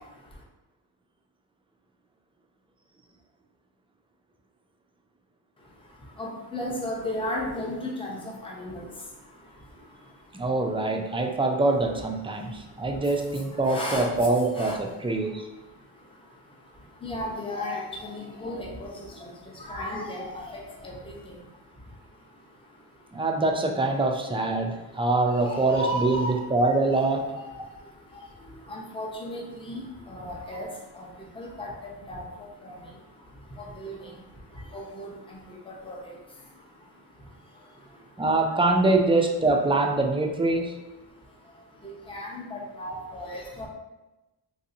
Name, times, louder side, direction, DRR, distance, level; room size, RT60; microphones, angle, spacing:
voice 1, 6.2-8.9 13.6-14.1 14.5-14.8 17.0-18.9 19.2-19.3 19.6-21.1 25.4-26.3 27.3-27.4 28.7-29.8 30.1-30.7 31.0-31.1 31.4-31.7 32.1-32.2 32.6-32.7 33.8-34.0 34.7-35.1 35.8-36.0 42.1-43.7, left 1 dB, 10° left, -2 dB, 0.7 m, -34 dB
voice 2, 10.3-15.5 23.1-27.2 38.2-40.7, right 2 dB, 15° right, 2 dB, 0.3 m, -24 dB
3.2 x 2.6 x 2.6 m, 1.0 s
cardioid pair, 70°, 46 cm